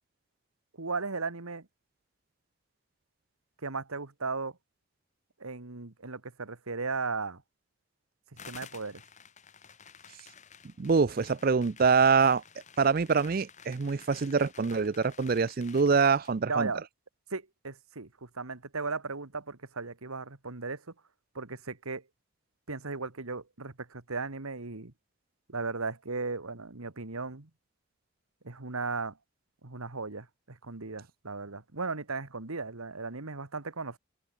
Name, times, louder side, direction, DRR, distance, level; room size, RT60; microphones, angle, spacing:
voice 1, 0.8-1.7 3.6-4.6 5.4-7.4 8.5-9.0 16.5-16.8 17.3-20.8 21.4-22.0 22.7-24.9 25.5-27.5 28.4-29.2 29.6-34.0, right 4 dB, 90° right, 1.8 m, -36 dB
sound 1, 8.4-16.4, left 7 dB, 35° left, 2.5 m, -52 dB
voice 2, 10.8-12.4 12.8-16.7, right 5 dB, 45° right, 0.4 m, -25 dB
open air
head